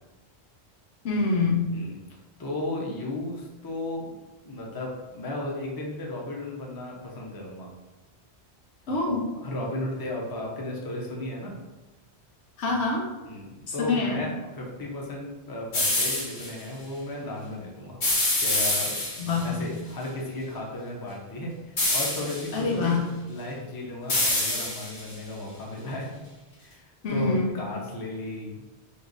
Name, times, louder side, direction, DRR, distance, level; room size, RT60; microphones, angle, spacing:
voice 1, 1.0-1.7 8.9-9.3 12.6-13.1 13.8-14.2 19.2-19.6 22.5-23.0 27.0-27.5, left 3 dB, 90° left, -1 dB, 1.1 m, -25 dB
voice 2, 2.4-4.2 4.5-7.7 9.4-11.6 13.3-18.0 18.4-19.0 19.4-23.0 23.3-26.2 26.6-28.6, left 1 dB, 25° left, -2 dB, 0.6 m, -34 dB
sound 1, 15.7-16.5 18.0-19.4 21.8-22.6 24.1-25.1, left 2 dB, 70° left, 1.5 m, -26 dB
3.1 x 3.0 x 3.9 m, 1.2 s
omnidirectional pair, 1.1 m